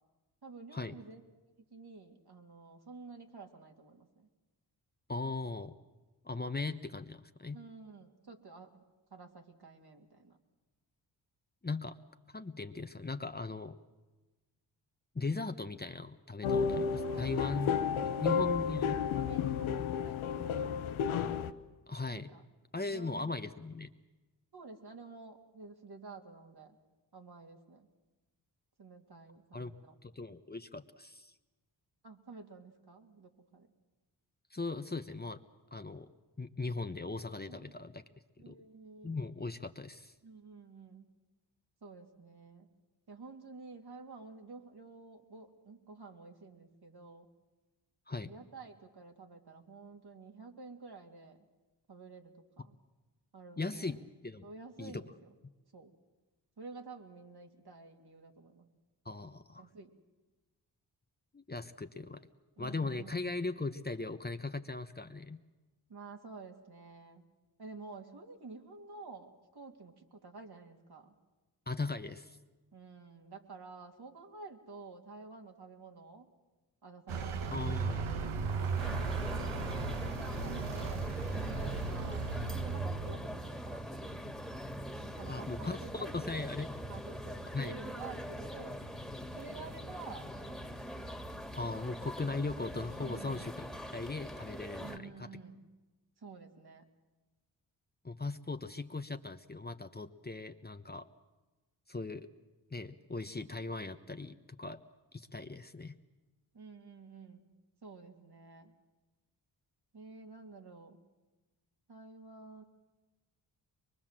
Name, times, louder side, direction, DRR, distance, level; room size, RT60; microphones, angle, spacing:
voice 1, 0.4-1.2 1.7-4.3 7.5-8.8 9.1-10.3 17.0-17.2 18.0-18.5 19.1-20.8 22.1-22.4 22.9-23.3 24.5-26.8 27.1-27.9 28.8-29.9 32.0-33.7 38.4-39.2 40.2-41.1 41.8-42.7 43.1-47.3 48.2-51.4 51.9-52.7 53.3-53.9 54.4-55.1 55.7-55.9 56.6-58.7 59.6-59.9 62.6-63.3 65.9-67.3 67.6-71.1 72.7-76.3 76.8-78.4 79.4-84.3 85.2-86.5 86.9-88.9 89.4-90.6 93.0-93.5 94.8-95.6 96.2-96.8 106.5-107.4 107.8-108.7 109.9-111.0 111.9-112.6, right 4 dB, 55° right, 3 dB, 2.9 m, -51 dB
voice 2, 5.1-5.7 6.2-7.6 11.6-12.0 12.3-13.8 15.1-19.0 21.9-22.3 22.7-23.9 29.5-29.7 30.0-31.3 34.5-35.4 35.7-36.1 36.4-38.0 38.5-38.6 39.0-40.1 48.1-48.3 53.6-54.5 54.8-55.1 59.0-59.7 61.3-62.2 62.6-65.4 71.7-72.4 77.5-78.2 85.2-86.8 87.5-87.8 91.5-93.7 93.9-95.3 98.0-101.1 101.9-102.3 102.7-104.8 105.1-106.0, left 3 dB, 20° left, 8 dB, 1.1 m, -39 dB
sound 1, 16.4-21.5, left 6 dB, 85° left, 0.9 m, -32 dB
Vehicle, 77.1-83.5, right 4 dB, 80° right, 1.5 m, -36 dB
sound 2, 78.8-95.0, equal, ahead, 2.2 m, -42 dB
23.5 x 22.0 x 7.6 m, 1.2 s
supercardioid pair, 40°, 47 cm